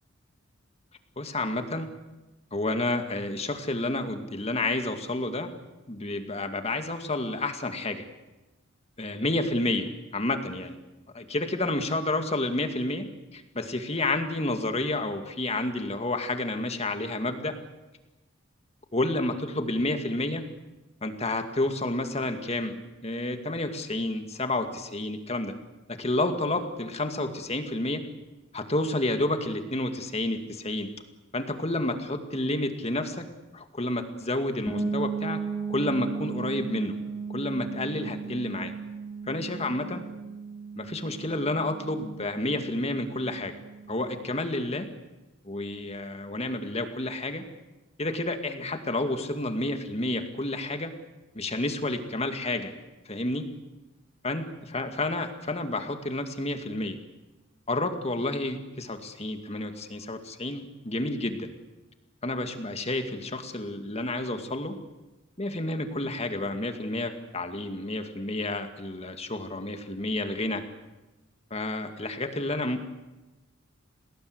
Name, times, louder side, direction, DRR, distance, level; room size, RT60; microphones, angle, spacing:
voice 1, 1.2-1.9 2.5-5.5 5.9-8.0 9.0-10.7 11.1-13.1 13.3-17.5 18.9-20.4 21.0-22.8 23.0-25.5 25.9-28.0 28.5-30.9 31.3-33.2 33.5-35.4 35.7-37.0 37.3-38.7 39.3-40.0 40.8-43.6 43.9-44.9 45.4-47.4 48.0-50.9 51.3-52.7 53.0-53.5 54.2-57.0 57.7-61.5 62.2-64.8 65.4-70.6 71.5-72.8, left 2 dB, 30° left, 7 dB, 2.3 m, -30 dB
sound 1, 34.7-44.3, right 5 dB, 5° right, 4.6 m, -36 dB
29.0 x 19.5 x 8.1 m, 1.1 s
head